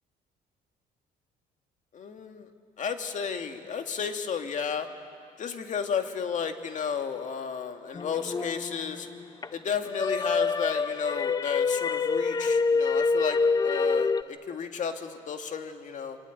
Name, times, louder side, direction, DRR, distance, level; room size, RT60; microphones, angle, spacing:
voice 1, 1.9-2.5 2.8-4.9 5.4-9.1 9.5-16.2, left 7 dB, 45° left, 5 dB, 2.1 m, -33 dB
sound 1, 7.9-9.5 9.9-14.2, left 4 dB, 20° left, 0.6 m, -26 dB
25.5 x 24.0 x 9.5 m, 2.4 s
cardioid pair, 110°, 17 cm